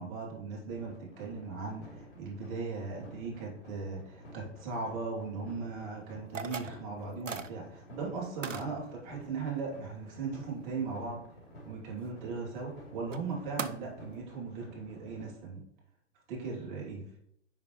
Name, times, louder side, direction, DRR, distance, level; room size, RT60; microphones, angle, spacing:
voice 1, 0.0-11.2 11.7-15.6 16.3-17.0, right 4 dB, 40° right, -2 dB, 2.9 m, -38 dB
sound 1, 0.7-15.2, left 1 dB, 60° left, 3.4 m, -52 dB
sound 2, 6.3-6.8 7.3-7.5 8.4-8.7 12.6-12.7 13.1-13.2 13.6-13.7, right 5 dB, 90° right, 0.6 m, -37 dB
9.9 x 5.2 x 3.1 m, 0.71 s
figure-of-eight pair, 110°, 37 cm